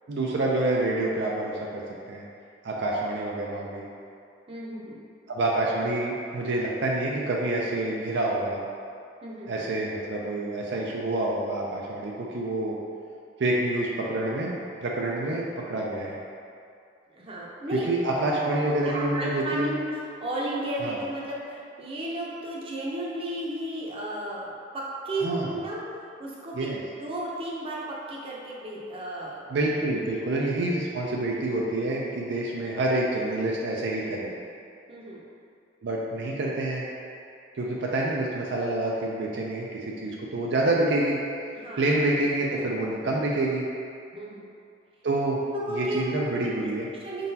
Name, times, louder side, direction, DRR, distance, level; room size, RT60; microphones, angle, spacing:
voice 1, 0.1-1.8 2.1-2.2 2.6-3.8 5.3-8.6 9.5-12.7 13.4-16.2 17.7-19.7 20.8-21.0 25.2-25.5 26.5-26.8 29.5-34.3 35.8-36.8 37.5-41.2 41.8-43.6 45.0-45.4 45.7-46.9, right 2 dB, 65° right, -3 dB, 0.5 m, -27 dB
voice 2, 4.5-5.0 9.2-9.6 17.1-25.8 26.2-26.7 27.0-27.8 28.1-29.4 30.0-30.2 34.9-35.2 41.5-41.9 44.1-44.5 45.5-46.7 47.0-47.3, right 1 dB, 30° right, -5 dB, 0.7 m, -34 dB
4.8 x 3.8 x 2.8 m, 2.5 s
head